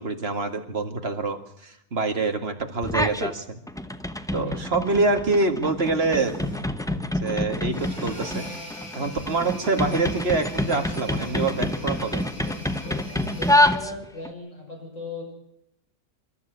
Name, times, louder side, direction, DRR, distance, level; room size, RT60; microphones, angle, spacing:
voice 1, 0.0-3.6 4.3-6.4 7.0-8.5 8.9-12.2, right 3 dB, 45° right, 6 dB, 2.2 m, -26 dB
sound 1, 2.8-3.3 3.7-14.3, left 1 dB, 5° left, 0.6 m, -27 dB
voice 2, 4.3-4.7 13.0-15.2, left 3 dB, 60° left, 0 dB, 6.9 m, -38 dB
sound 2, 5.0-13.7, equal, 80° left, 7.8 m, -40 dB
27.0 x 12.5 x 8.1 m, 0.80 s
omnidirectional pair, 1.5 m